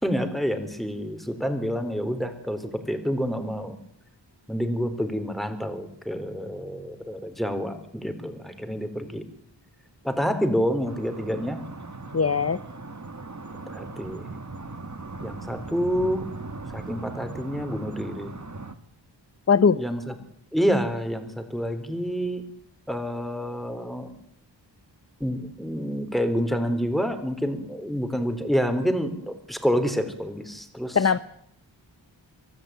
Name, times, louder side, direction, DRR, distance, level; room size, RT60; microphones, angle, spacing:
voice 1, 0.0-3.8 4.5-9.2 10.0-11.6 13.7-14.2 15.2-16.2 16.7-18.3 19.7-20.2 20.5-22.4 22.9-24.1 25.2-31.0, equal, ahead, 8 dB, 4.2 m, -28 dB
sound 1, 10.8-18.7, right 3 dB, 40° right, 2.1 m, -39 dB
voice 2, 12.1-12.6 19.5-19.8 30.9-31.2, left 6 dB, 35° left, 13 dB, 0.8 m, -20 dB
25.0 x 15.0 x 9.1 m, 0.72 s
wide cardioid pair, 55°, 45 cm